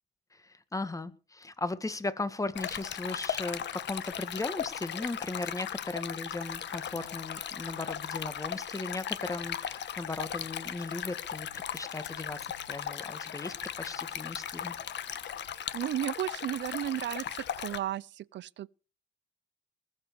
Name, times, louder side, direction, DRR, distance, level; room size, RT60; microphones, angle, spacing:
voice 1, 0.3-14.7, left 2 dB, 15° left, 1.8 m, -37 dB
Stream, 2.5-17.8, left 9 dB, 65° left, 1.4 m, -37 dB
sound 1, 6.8-7.4 7.7-8.4 9.0-11.8 12.0-12.7 13.3-15.5, left 3 dB, 40° left, 5.7 m, -60 dB
voice 2, 15.7-18.7, right 12 dB, 65° right, 0.6 m, -34 dB
20.5 x 7.4 x 6.9 m
cardioid pair, 90°, 20 cm